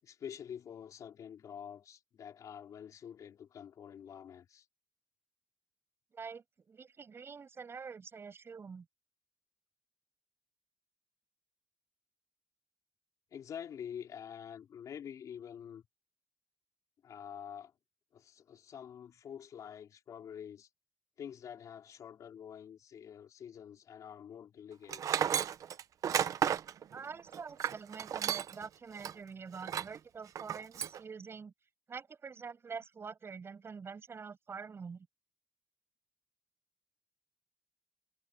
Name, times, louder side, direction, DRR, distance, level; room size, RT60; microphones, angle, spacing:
voice 1, 0.0-4.7 13.3-15.8 17.0-17.7 18.1-20.7 21.2-25.2, left 8 dB, 90° left, 4.3 m, -47 dB
voice 2, 6.1-8.9 26.9-31.5 31.9-35.1, right 5 dB, 45° right, 7.3 m, -46 dB
Tools, 24.9-28.7 29.0-29.1 29.6-30.0 30.4-31.0, right 9 dB, 85° right, 0.8 m, -33 dB
wide cardioid pair, 120°, 6 cm